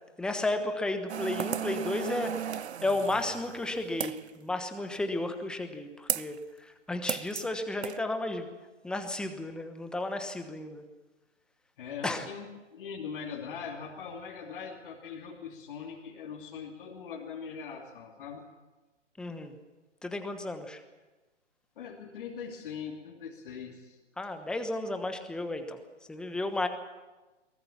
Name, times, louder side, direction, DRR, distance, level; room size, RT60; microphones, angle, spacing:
voice 1, 0.2-8.5 8.8-10.8 12.0-12.3 19.2-19.5 20.0-20.8 24.2-25.8 26.1-26.7, left 2 dB, ahead, 7 dB, 1.1 m, -33 dB
sound 1, 1.1-4.3 6.1-6.4 7.1-7.5 7.8-8.0, right 8 dB, 65° right, 0.7 m, -35 dB
voice 2, 11.8-18.4 21.8-24.0, left 6 dB, 45° left, -3 dB, 3.0 m, -41 dB
22.5 x 19.5 x 7.2 m, 1.2 s
figure-of-eight pair, 130°, 36 cm